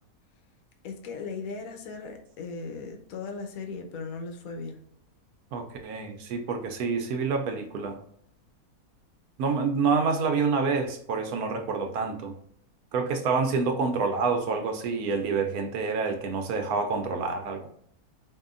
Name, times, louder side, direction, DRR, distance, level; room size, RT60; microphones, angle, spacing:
voice 1, 0.8-4.8, left 4 dB, 70° left, 5 dB, 1.1 m, -37 dB
voice 2, 5.5-8.0 9.4-12.3 12.9-17.7, right 4 dB, 75° right, 4 dB, 1.0 m, -27 dB
4.6 x 2.7 x 2.4 m, 0.67 s
omnidirectional pair, 1.6 m